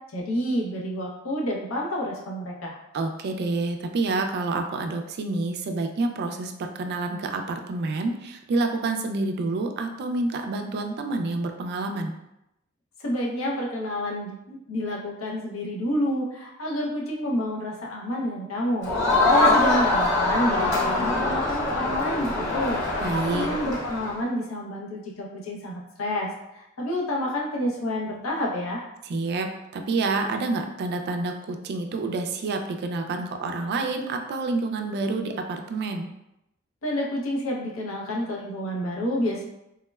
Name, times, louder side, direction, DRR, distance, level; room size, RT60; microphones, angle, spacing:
voice 1, 0.1-2.8 13.0-18.9 19.3-22.8 23.3-28.9 36.8-39.5, equal, 90° left, -2 dB, 0.6 m, -29 dB
voice 2, 2.9-12.1 19.1-19.2 23.0-23.5 29.0-36.1, right 3 dB, 50° right, 5 dB, 0.3 m, -28 dB
Crowd, 18.8-24.2, left 2 dB, 60° left, 1.1 m, -23 dB
3.5 x 2.1 x 2.2 m, 0.85 s
head